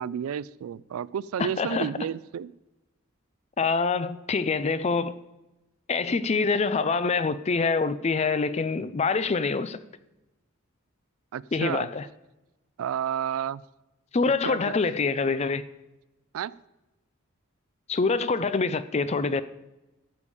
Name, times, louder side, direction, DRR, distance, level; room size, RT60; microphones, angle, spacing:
voice 1, 0.0-2.5 11.3-11.9 12.8-13.6 14.4-14.7 16.3-16.5, right 8 dB, 75° right, 0.3 m, -31 dB
voice 2, 1.4-1.9 3.6-5.2 5.9-9.8 11.5-12.1 14.1-15.6 17.9-19.4, left 4 dB, 30° left, 0.4 m, -25 dB
13.5 x 7.0 x 4.9 m
head